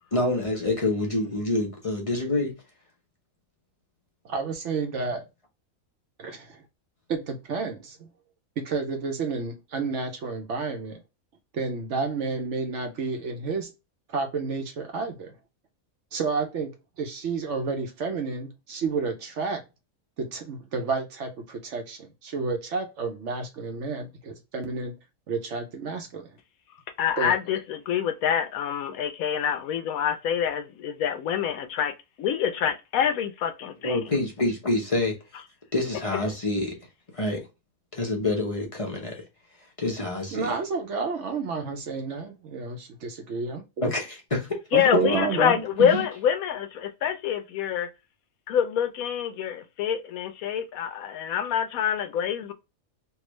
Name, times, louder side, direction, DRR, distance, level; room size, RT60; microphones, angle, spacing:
voice 1, 0.1-2.5 33.8-35.1 35.7-36.7 37.1-37.5 37.9-39.2 39.8-40.5 43.8-44.6, left 2 dB, 30° left, 0.7 m, -27 dB
voice 2, 4.2-5.2 6.2-6.6 7.1-8.1 8.6-11.0 11.5-13.7 14.1-15.3 16.1-19.6 20.2-25.0 25.3-26.3 27.2-27.3 40.3-43.9 44.7-46.1, right 4 dB, 60° right, 0.9 m, -30 dB
voice 3, 27.0-34.0 44.7-47.9 48.5-52.5, left 9 dB, 75° left, 1.0 m, -26 dB
3.4 x 2.4 x 3.0 m
omnidirectional pair, 1.5 m